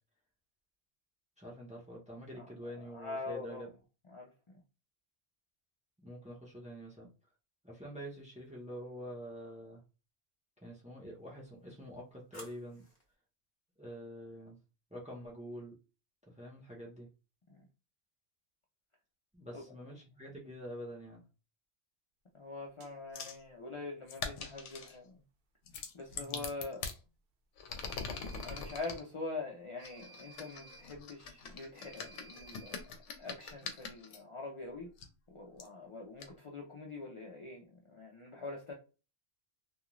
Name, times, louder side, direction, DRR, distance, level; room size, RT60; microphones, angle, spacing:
voice 1, 1.4-3.7 6.0-7.1 7.6-9.8 10.6-12.8 13.8-14.6 14.9-15.8 16.3-17.1 19.3-21.2 26.1-26.5, equal, 10° right, 0.5 m, -46 dB
voice 2, 2.9-3.7 4.1-4.6 17.5-17.7 19.5-19.6 22.3-25.2 25.9-26.9 28.4-34.9 35.3-38.7, left 3 dB, 45° left, 0.4 m, -44 dB
sound 1, 7.9-8.7 11.1-13.1, left 1 dB, 25° left, 1.0 m, -58 dB
sound 2, 22.8-22.9 27.8-28.9 29.8-30.9 31.8-32.9, right 4 dB, 60° right, 0.7 m, -56 dB
sound 3, 23.1-23.4 24.1-25.0 25.7-27.0 27.6-29.0 29.8-34.2 35.0-35.1 35.6-35.7 36.2-36.3, left 5 dB, 85° left, 0.9 m, -43 dB
2.4 x 2.3 x 3.0 m
omnidirectional pair, 1.2 m